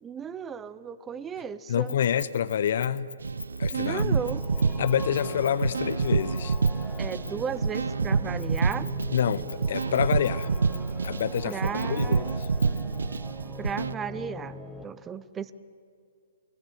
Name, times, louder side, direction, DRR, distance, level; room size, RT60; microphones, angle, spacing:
voice 1, 0.0-1.9 3.7-4.4 7.0-8.9 11.4-12.4 13.6-15.5, right 7 dB, 15° right, 16 dB, 0.7 m, -35 dB
voice 2, 1.7-3.1 3.6-4.2 4.8-6.6 9.1-10.5 11.0-12.5, left 9 dB, 60° left, 16 dB, 0.9 m, -27 dB
Keys jangling, 1.9-7.6 8.4-13.2, left 5 dB, 80° left, 1.5 m, -44 dB
sound 1, 3.2-13.9, right 4 dB, 80° right, 0.6 m, -28 dB
sound 2, 4.2-14.8, left 1 dB, 5° left, 1.6 m, -43 dB
28.5 x 19.0 x 7.8 m, 2.3 s
hypercardioid pair, 130°, 0 cm